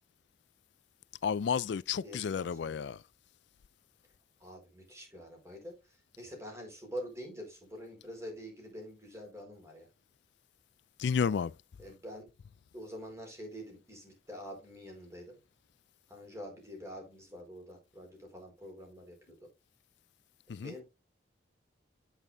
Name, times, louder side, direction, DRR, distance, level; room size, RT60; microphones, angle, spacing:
voice 1, 1.2-3.0 11.0-11.5 20.5-20.7, left 6 dB, 65° left, 0.3 m, -31 dB
voice 2, 2.0-3.0 4.4-9.9 11.8-12.3 12.7-15.4 16.1-19.4 20.5-20.8, equal, 15° right, 4.6 m, -46 dB
9.0 x 8.1 x 2.6 m
head